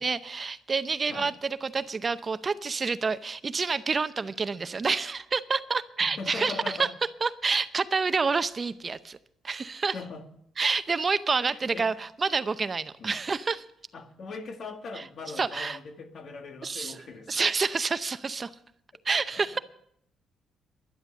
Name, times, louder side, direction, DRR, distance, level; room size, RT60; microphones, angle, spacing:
voice 1, 0.0-6.9 7.2-9.2 9.4-9.9 10.6-13.6 15.0-15.1 15.4-15.8 16.6-16.9 17.3-18.5 19.0-19.6, right 4 dB, 35° right, 13 dB, 0.6 m, -28 dB
voice 2, 6.0-6.9 9.9-10.2 11.5-11.9 13.0-13.2 13.9-17.3 19.3-19.4, left 4 dB, 55° left, 6 dB, 1.8 m, -40 dB
11.5 x 11.0 x 6.5 m, 0.71 s
cardioid pair, 90°, 0 cm